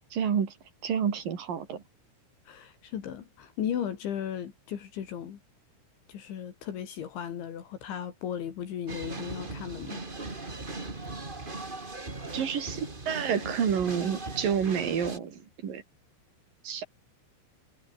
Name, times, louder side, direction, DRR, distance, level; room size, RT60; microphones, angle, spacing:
voice 1, 0.1-0.5 0.8-1.8 12.3-15.8 16.6-16.8, right 7 dB, 50° right, 4.6 m, -29 dB
voice 2, 2.5-5.4 6.1-10.0, left 9 dB, 75° left, 5.1 m, -36 dB
sound 1, 8.9-15.2, right 2 dB, 20° right, 1.3 m, -39 dB
omnidirectional pair, 5.5 m